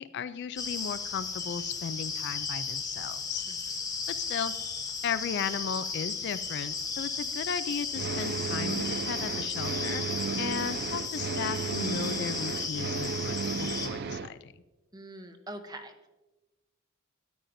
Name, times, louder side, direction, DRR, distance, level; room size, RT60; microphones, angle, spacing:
voice 1, 0.0-3.5 4.1-4.5 5.0-10.0 10.4-14.5, left 7 dB, 55° left, 13 dB, 0.3 m, -36 dB
sound 1, 0.6-13.9, left 4 dB, 15° left, 0.9 m, -35 dB
sound 2, 7.9-14.3, right 5 dB, 50° right, 0.4 m, -34 dB
voice 2, 14.9-16.1, right 1 dB, 20° right, 6 dB, 0.8 m, -43 dB
13.0 x 10.5 x 2.6 m, 1.1 s
head